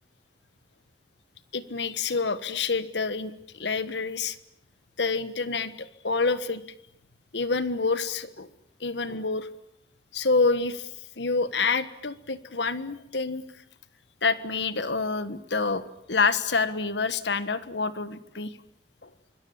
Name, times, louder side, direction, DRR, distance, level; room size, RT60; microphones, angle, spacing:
voice 1, 1.5-4.4 5.0-6.6 7.3-8.5 8.8-9.5 10.1-10.9 11.2-13.4 14.2-18.6 19.0-19.1, left 4 dB, 75° left, 13 dB, 1.5 m, -27 dB
26.0 x 21.5 x 8.7 m, 0.76 s
head